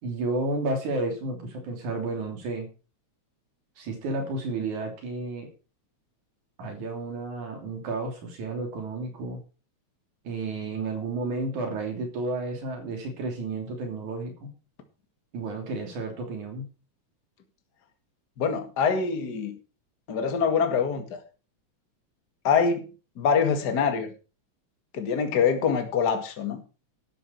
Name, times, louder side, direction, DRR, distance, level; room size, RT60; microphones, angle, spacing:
voice 1, 0.0-2.7 3.8-5.5 6.6-9.4 10.2-14.5 15.3-16.7, right 2 dB, 85° right, 4.4 m, -32 dB
voice 2, 18.4-19.6 20.1-21.2 22.4-22.8 23.2-24.1 24.9-26.6, left 6 dB, 40° left, 2.2 m, -24 dB
12.5 x 10.0 x 4.6 m
omnidirectional pair, 3.3 m